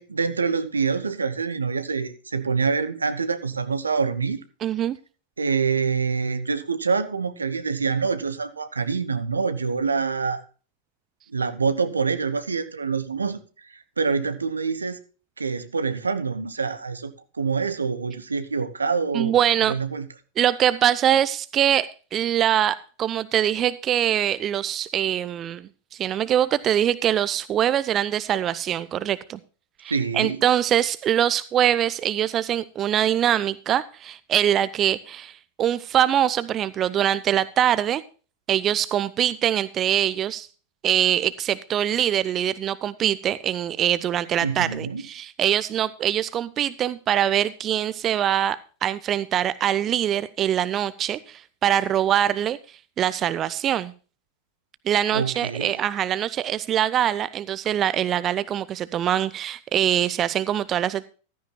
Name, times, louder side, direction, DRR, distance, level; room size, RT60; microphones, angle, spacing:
voice 1, 0.0-4.4 5.4-10.4 11.3-13.4 14.0-15.0 15.4-19.3 19.7-20.1 29.9-30.4 44.4-45.0 55.1-55.7, right 5 dB, 75° right, 1.1 m, -26 dB
voice 2, 4.6-5.0 19.1-19.7 20.4-29.4 29.8-38.0 38.5-40.5 40.8-52.6 53.0-53.9 54.9-61.1, right 10 dB, 30° right, 0.6 m, -23 dB
15.0 x 13.5 x 2.2 m
figure-of-eight pair, 90°, 0 cm